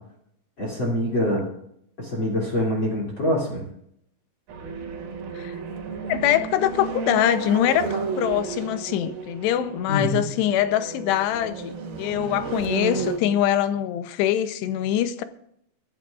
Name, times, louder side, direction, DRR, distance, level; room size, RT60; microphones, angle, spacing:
voice 1, 0.6-1.5 2.0-3.6 9.9-10.2, left 1 dB, 30° left, 3.2 m, -24 dB
sound 1, 4.5-13.2, right 4 dB, 65° right, 3.7 m, -32 dB
voice 2, 6.0-15.2, left 11 dB, 90° left, 3.0 m, -23 dB
23.5 x 13.0 x 2.5 m
omnidirectional pair, 4.7 m